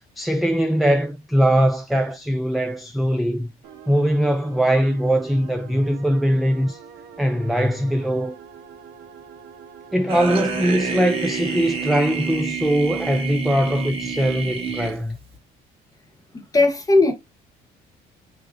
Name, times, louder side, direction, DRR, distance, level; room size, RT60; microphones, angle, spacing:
voice 1, 0.2-3.5 3.9-6.8 7.2-8.4 9.9-15.2, equal, ahead, 0.4 m, -21 dB
sound 1, 3.6-12.4, right 7 dB, 90° right, 1.1 m, -44 dB
sound 2, 10.1-15.4, right 5 dB, 35° right, 1.2 m, -28 dB
voice 2, 16.3-17.1, left 2 dB, 20° left, 1.1 m, -17 dB
4.7 x 3.1 x 2.6 m
cardioid pair, 110°, 17 cm